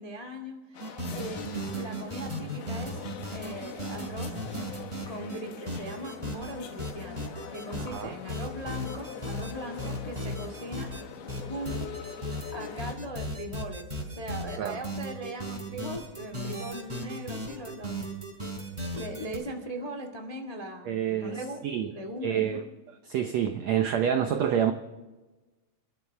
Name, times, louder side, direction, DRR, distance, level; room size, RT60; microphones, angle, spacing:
voice 1, 0.0-3.0 3.3-4.7 5.1-10.9 11.4-11.9 12.2-18.0 18.9-21.6 21.9-22.6, right 1 dB, 50° left, 2 dB, 0.4 m, -39 dB
sound 1, 0.7-13.0, left 6 dB, 80° left, 3.4 m, -43 dB
sound 2, 0.8-5.4 5.7-6.5 6.8-8.0 8.3-9.5 9.8-11.0 11.3-19.4, equal, 10° right, 4.1 m, -36 dB
voice 2, 20.9-21.4 21.6-21.9 22.2-22.6 23.1-24.7, right 9 dB, 85° right, 6 dB, 1.5 m, -27 dB
30.0 x 13.0 x 3.4 m, 1.1 s
omnidirectional pair, 4.3 m